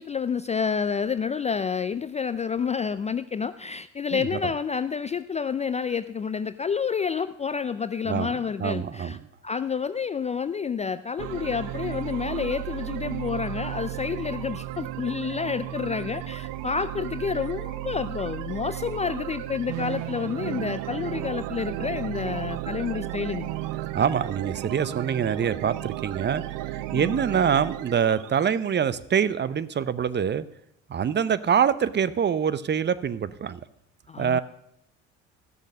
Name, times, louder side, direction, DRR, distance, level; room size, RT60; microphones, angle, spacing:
voice 1, 0.0-9.2 9.4-23.5 26.9-27.2 34.1-34.4, left 6 dB, 20° left, 13 dB, 0.3 m, -29 dB
voice 2, 4.1-4.5 8.1-8.3 8.6-9.2 23.9-30.5 30.9-33.6 34.2-34.4, right 8 dB, 30° right, 16 dB, 0.6 m, -25 dB
sound 1, 11.2-28.7, right 15 dB, 65° right, 0.7 m, -34 dB
13.5 x 6.5 x 6.3 m, 0.79 s
hypercardioid pair, 65°, 36 cm